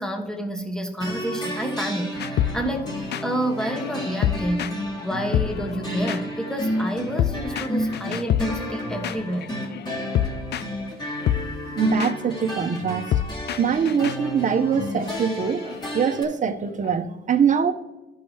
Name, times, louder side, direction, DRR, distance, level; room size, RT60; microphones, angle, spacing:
voice 1, 0.0-9.5, equal, 5° left, 3 dB, 1.2 m, -29 dB
sound 1, 1.0-16.2, equal, 20° left, 2.2 m, -31 dB
sound 2, 2.2-5.1 5.3-16.9, left 10 dB, 55° left, 0.4 m, -29 dB
voice 2, 11.8-13.1 13.6-17.7, right 7 dB, 40° right, 7 dB, 0.7 m, -23 dB
12.5 x 5.6 x 2.8 m, 1.1 s
cardioid pair, 90°, 20 cm